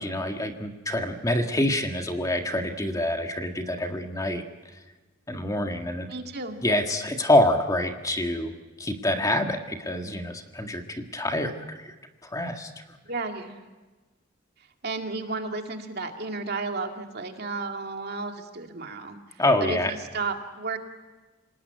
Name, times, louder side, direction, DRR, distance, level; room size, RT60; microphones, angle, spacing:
voice 1, 0.0-4.4 5.3-6.1 6.6-8.5 8.8-11.9 12.2-12.7 19.4-19.9, left 1 dB, 15° left, 4 dB, 1.7 m, -26 dB
voice 2, 6.1-6.6 13.1-13.6 14.8-19.2 19.6-20.8, right 3 dB, 50° right, 4 dB, 2.3 m, -33 dB
27.0 x 19.0 x 9.3 m, 1.2 s
head